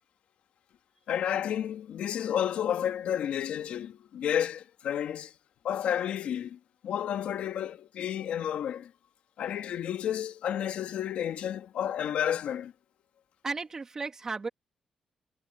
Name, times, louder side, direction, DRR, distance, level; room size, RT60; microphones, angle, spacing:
voice 1, 1.1-5.3 5.6-8.9 9.4-12.7, left 9 dB, 80° left, 1.7 m, -31 dB
voice 2, 13.4-14.5, right 4 dB, 25° right, 2.5 m, -34 dB
wide cardioid pair, 150°, 2 cm